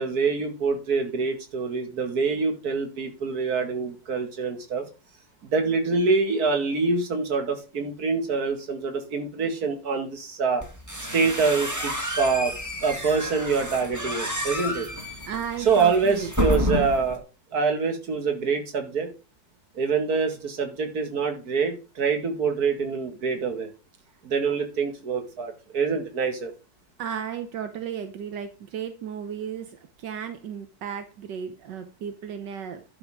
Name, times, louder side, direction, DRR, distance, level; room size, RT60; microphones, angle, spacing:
voice 1, 0.0-4.9 5.5-10.6 11.1-12.5 12.8-14.9 15.7-17.2 17.5-19.1 19.7-23.7 24.2-26.5, right 4 dB, 60° right, 5 dB, 2.4 m, -25 dB
sound 1, 10.6-17.2, equal, 10° right, 1.9 m, -30 dB
voice 2, 15.2-16.3 27.0-32.8, right 8 dB, 85° right, 7 dB, 1.7 m, -34 dB
11.5 x 5.8 x 4.9 m, 0.31 s
omnidirectional pair, 1.8 m